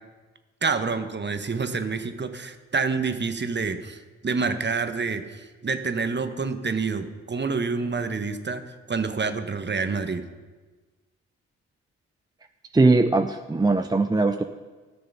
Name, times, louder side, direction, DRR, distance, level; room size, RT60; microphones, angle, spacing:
voice 1, 0.6-8.6 8.9-10.2, right 4 dB, 35° right, 8 dB, 1.2 m, -28 dB
voice 2, 12.7-14.4, right 3 dB, 10° right, 8 dB, 0.5 m, -20 dB
13.0 x 6.7 x 5.5 m, 1.3 s
hypercardioid pair, 40°, 33 cm